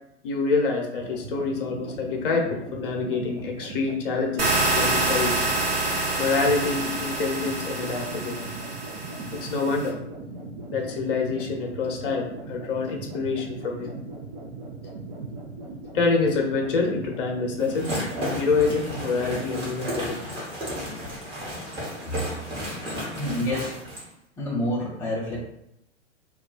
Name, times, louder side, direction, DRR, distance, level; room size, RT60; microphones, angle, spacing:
voice 1, 0.2-5.5 6.2-8.4 9.3-10.0 10.7-13.9 15.9-20.5, left 4 dB, 50° left, 1 dB, 0.8 m, -26 dB
sound 1, 1.0-19.4, right 3 dB, 40° right, 0.6 m, -39 dB
sound 2, 4.4-9.9, right 2 dB, 55° right, 1.0 m, -27 dB
sound 3, 17.6-24.1, equal, 15° right, 1.0 m, -33 dB
voice 2, 22.0-22.3 23.2-23.8 24.4-25.4, left 1 dB, 5° left, -5 dB, 0.5 m, -28 dB
2.4 x 2.2 x 3.8 m, 0.77 s
figure-of-eight pair, 100°, 35 cm